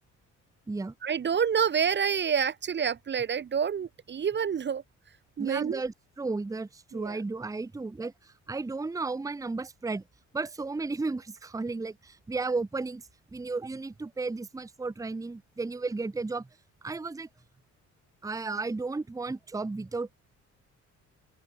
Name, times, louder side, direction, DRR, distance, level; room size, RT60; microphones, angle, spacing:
voice 1, 1.0-4.8 5.4-5.8 6.9-7.2, right 7 dB, 35° right, 0.7 m, -28 dB
voice 2, 5.4-10.0 10.3-13.0 13.3-16.5 16.8-17.3 18.2-20.2, right 3 dB, 10° right, 0.7 m, -34 dB
open air
cardioid pair, 90°, 30 cm